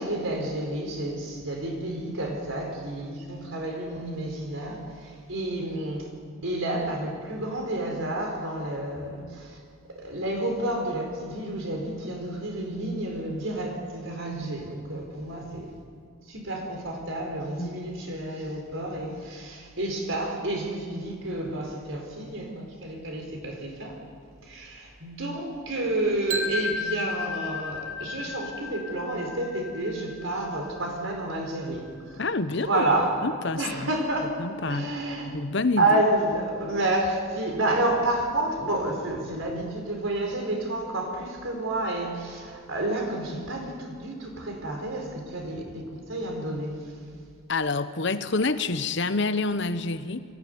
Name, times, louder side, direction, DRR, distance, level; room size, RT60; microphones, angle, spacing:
voice 1, 0.0-6.1 6.4-9.6 9.9-15.7 16.3-24.0 24.4-32.2 32.5-33.2 33.6-34.3 34.7-35.3 35.8-46.9, right 1 dB, 70° right, 2 dB, 4.4 m, -30 dB
sound 1, 26.3-32.2, left 3 dB, 85° right, 2.8 m, -34 dB
voice 2, 32.2-32.8 33.2-33.9 34.4-34.9 35.3-35.9 47.5-50.2, left 3 dB, 55° left, 12 dB, 1.0 m, -27 dB
23.0 x 15.5 x 9.5 m, 2.1 s
head